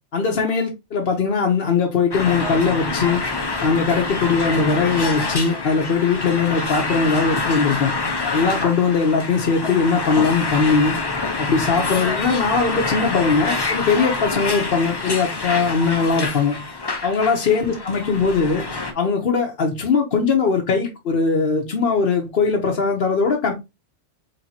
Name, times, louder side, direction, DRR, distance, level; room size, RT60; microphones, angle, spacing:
voice 1, 0.1-3.2 3.6-7.9 8.3-11.0 11.4-16.6 17.0-18.7 18.9-23.5, left 5 dB, 55° left, 0.9 m, -20 dB
sound 1, 2.1-18.9, left 3 dB, 30° left, 0.5 m, -26 dB
4.5 x 3.2 x 2.7 m
omnidirectional pair, 1.2 m